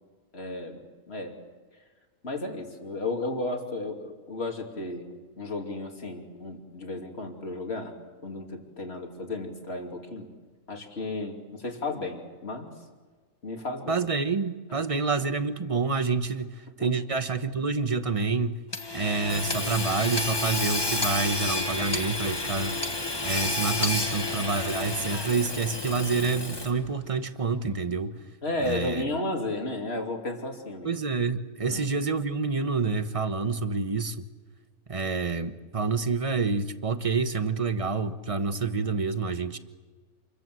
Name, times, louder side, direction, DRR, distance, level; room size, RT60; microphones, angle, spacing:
voice 1, 0.3-0.8 1.1-1.4 2.2-7.9 8.2-10.3 10.7-12.7 13.4-14.1 14.7-14.9 16.8-16.9 28.4-30.9 31.7-31.8, left 2 dB, 50° left, 3.2 m, -33 dB
voice 2, 13.9-16.5 16.8-18.6 18.9-22.8 23.2-28.2 28.6-29.0 30.8-34.3 34.9-39.6, right 4 dB, 25° right, 1.1 m, -28 dB
Hammer / Sawing, 18.7-26.9, left 2 dB, 20° left, 1.5 m, -30 dB
28.0 x 22.5 x 7.8 m
omnidirectional pair, 1.4 m